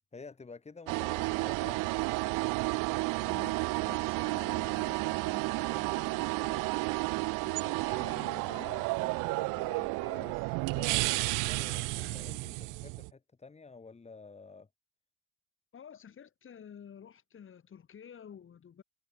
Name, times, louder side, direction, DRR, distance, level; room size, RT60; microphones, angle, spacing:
voice 1, 0.1-1.9 3.7-4.2 10.7-14.7, left 4 dB, 20° left, 4.4 m, -50 dB
sound 1, 0.9-13.1, right 26 dB, 75° right, 0.9 m, -32 dB
voice 2, 3.2-6.8 7.4-10.6 12.0-12.6 15.7-18.8, left 8 dB, 40° left, 6.4 m, -51 dB
supercardioid pair, 100°, 32 cm